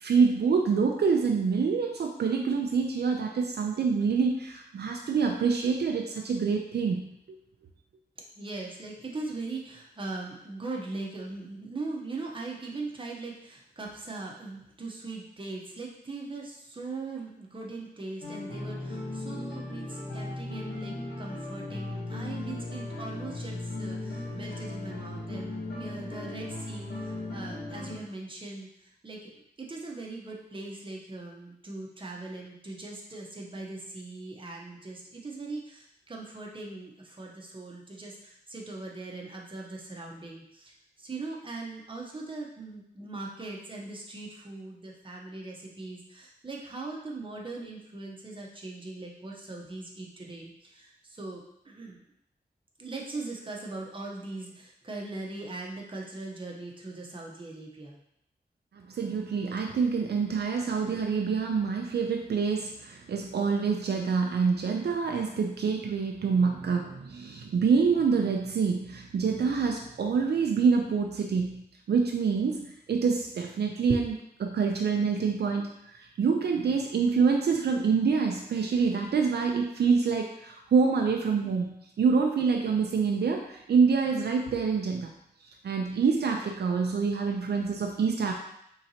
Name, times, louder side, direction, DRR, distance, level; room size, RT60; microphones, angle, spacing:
voice 1, 0.0-7.1 58.7-85.1 85.6-88.3, right 5 dB, 75° right, 2 dB, 0.4 m, -26 dB
voice 2, 8.4-52.0 52.8-58.0, right 3 dB, 30° right, -1 dB, 0.8 m, -40 dB
sound 1, 18.2-28.0, left 2 dB, 75° left, 1.0 m, -37 dB
4.4 x 3.8 x 2.8 m, 0.75 s
wide cardioid pair, 110°, 17 cm